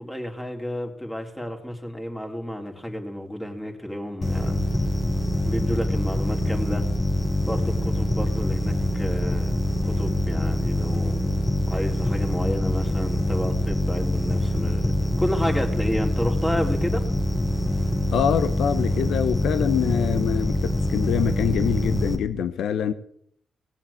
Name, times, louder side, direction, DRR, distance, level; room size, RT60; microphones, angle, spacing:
voice 1, 0.0-4.6 5.4-6.9 7.4-11.4 11.7-14.9 15.2-17.0, equal, 10° left, 3.8 m, -31 dB
sound 1, 4.2-22.2, left 1 dB, 35° left, 3.3 m, -24 dB
voice 2, 18.1-22.9, left 8 dB, 80° left, 0.9 m, -25 dB
18.0 x 7.4 x 8.7 m
supercardioid pair, 50°, 0 cm